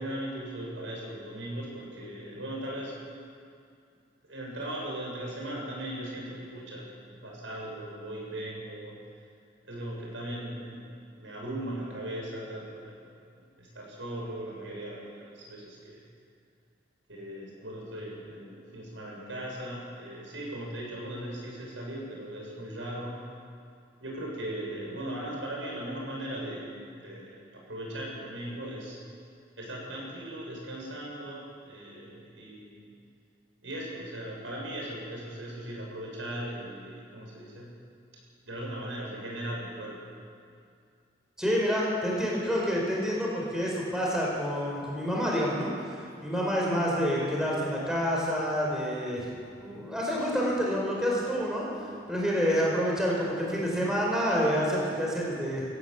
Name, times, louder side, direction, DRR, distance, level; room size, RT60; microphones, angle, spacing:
voice 1, 0.0-2.9 4.3-9.0 9.6-13.0 13.3-16.0 17.1-23.2 24.0-29.0 29.6-32.9 33.6-37.7 38.4-40.0, right 1 dB, 85° right, -3 dB, 7.5 m, -38 dB
voice 2, 41.4-49.3 49.6-55.6, equal, 5° right, -4 dB, 4.8 m, -28 dB
24.0 x 16.5 x 8.3 m, 2.4 s
head